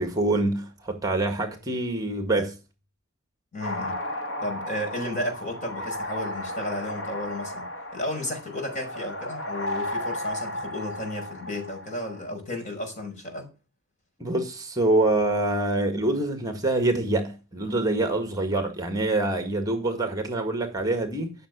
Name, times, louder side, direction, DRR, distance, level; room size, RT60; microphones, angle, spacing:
voice 1, 0.0-2.6 14.2-21.3, right 2 dB, 20° right, 1.7 m, -25 dB
voice 2, 3.5-4.0 4.4-7.7 7.9-13.5, left 1 dB, 35° left, 5.5 m, -33 dB
sound 1, 3.6-12.3, left 1 dB, 75° left, 2.9 m, -34 dB
14.5 x 6.9 x 6.7 m
head